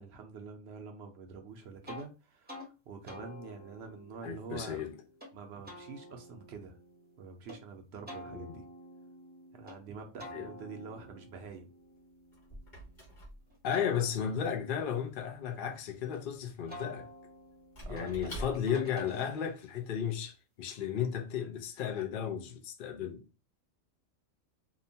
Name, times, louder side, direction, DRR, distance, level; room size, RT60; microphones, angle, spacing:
voice 1, 0.0-4.8 5.3-6.8 7.2-8.6 9.5-11.7 17.8-18.4, right 5 dB, 65° right, 0.7 m, -46 dB
sound 1, 1.9-2.1 2.5-2.7 3.1-5.3 5.6-7.6 8.1-9.8 10.2-13.1 13.5-16.2 16.7-19.7, left 1 dB, 10° right, 0.6 m, -50 dB
voice 2, 4.2-4.9 8.3-8.6 10.3-10.5 13.6-17.1 17.9-23.2, left 8 dB, 60° left, 0.5 m, -34 dB
Squeak / Wood, 11.8-19.0, equal, 35° left, 1.2 m, -49 dB
2.8 x 2.2 x 2.6 m
omnidirectional pair, 1.4 m